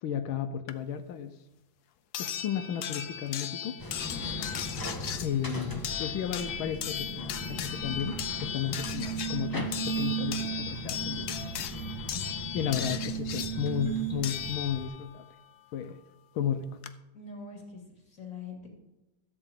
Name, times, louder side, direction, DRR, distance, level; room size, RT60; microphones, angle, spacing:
voice 1, 0.0-1.3 2.2-3.7 5.2-11.3 12.5-15.2 15.7-16.0 16.3-16.7, left 8 dB, 80° left, 8 dB, 1.6 m, -33 dB
sound 1, 0.7-0.8 2.1-15.1 16.4-16.5 16.8-16.9, left 9 dB, 65° left, 1.1 m, -37 dB
sound 2, 3.8-14.9, right 4 dB, 10° left, 1.2 m, -36 dB
voice 2, 4.1-4.6 17.1-18.7, left 3 dB, 40° left, 1 dB, 2.7 m, -44 dB
13.5 x 4.9 x 8.9 m, 0.95 s
omnidirectional pair, 2.2 m